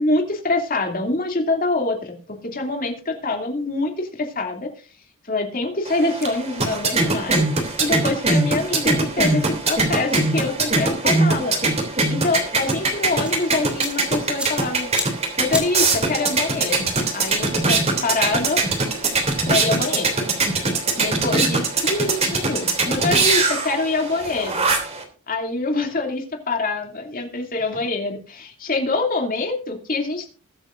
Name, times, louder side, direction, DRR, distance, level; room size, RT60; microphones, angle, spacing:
voice 1, 0.0-4.7 5.2-7.4 7.8-11.6 12.1-14.9 15.4-16.9 17.1-18.6 19.4-20.1 21.0-24.6 25.3-30.3, left 2 dB, 40° left, 4 dB, 2.7 m, -25 dB
sound 1, 5.9-25.0, right 3 dB, 30° right, 3.1 m, -22 dB
sound 2, 13.2-19.6, equal, 5° right, 4.2 m, -36 dB
21.5 x 8.3 x 2.6 m, 0.39 s
head